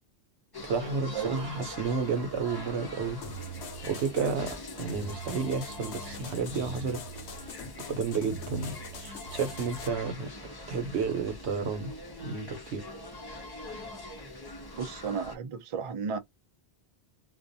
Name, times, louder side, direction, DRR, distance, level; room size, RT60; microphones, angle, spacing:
sound 1, 0.5-15.4, left 1 dB, 30° left, 0.5 m, -43 dB
voice 1, 0.6-3.2 3.8-7.0 7.3-7.5 7.9-10.3 10.7-11.9 12.2-12.9, right 5 dB, 85° right, 1.0 m, -31 dB
voice 2, 1.1-1.7 14.7-16.2, right 6 dB, 50° right, 0.4 m, -34 dB
sound 2, 3.2-9.9, equal, 75° left, 0.9 m, -42 dB
2.4 x 2.1 x 2.6 m
omnidirectional pair, 1.1 m